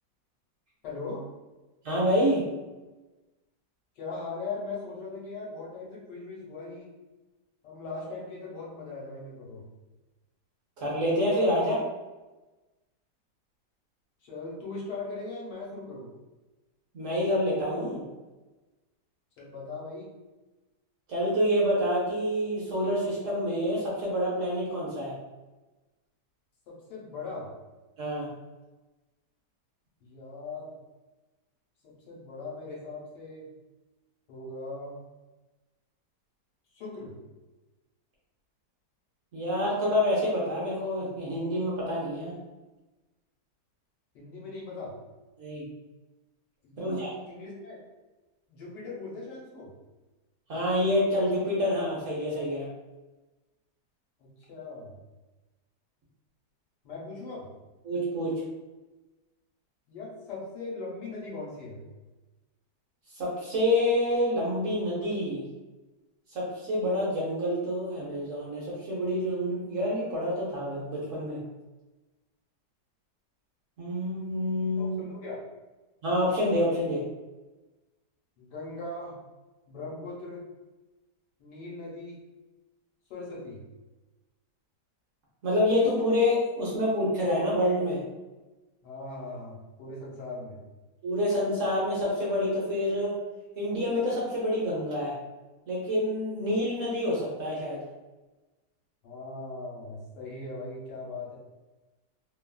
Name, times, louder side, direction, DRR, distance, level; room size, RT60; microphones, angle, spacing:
voice 1, 0.8-1.2 4.0-6.9 7.6-9.7 14.2-16.1 19.4-20.1 26.7-27.5 30.0-30.7 31.8-33.5 34.3-35.0 36.7-37.1 44.1-44.9 46.6-47.8 48.5-49.7 54.2-55.0 56.8-57.5 59.9-61.8 74.8-75.4 78.4-79.1 79.7-80.4 81.4-82.2 83.1-83.6 88.8-90.6 99.0-101.4, left 3 dB, 80° left, -4 dB, 1.4 m, -39 dB
voice 2, 1.8-2.4 10.8-11.8 16.9-18.0 21.1-25.1 28.0-28.3 39.3-42.3 45.4-45.6 46.8-47.1 50.5-52.7 57.8-58.4 63.2-65.4 66.3-71.4 73.8-75.0 76.0-77.0 85.4-88.0 91.0-93.1 93.6-95.2 95.7-97.8, left 1 dB, 60° right, -5 dB, 0.9 m, -27 dB
3.1 x 2.3 x 2.2 m, 1.1 s
omnidirectional pair, 1.8 m